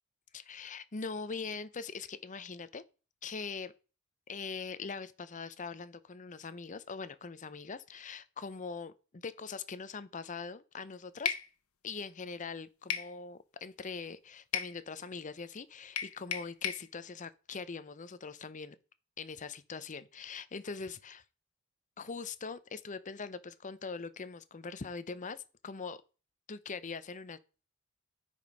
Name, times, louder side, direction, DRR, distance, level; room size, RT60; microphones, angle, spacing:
voice 1, 0.3-2.8 3.2-3.7 4.3-11.3 11.8-18.8 19.2-21.2 22.0-26.0 26.5-27.4, left 5 dB, 35° left, 0.6 m, -42 dB
sound 1, 11.3-11.5 12.9-13.1 14.5-14.8 16.0-16.9, left 8 dB, 75° left, 1.0 m, -34 dB
9.5 x 5.2 x 5.3 m
head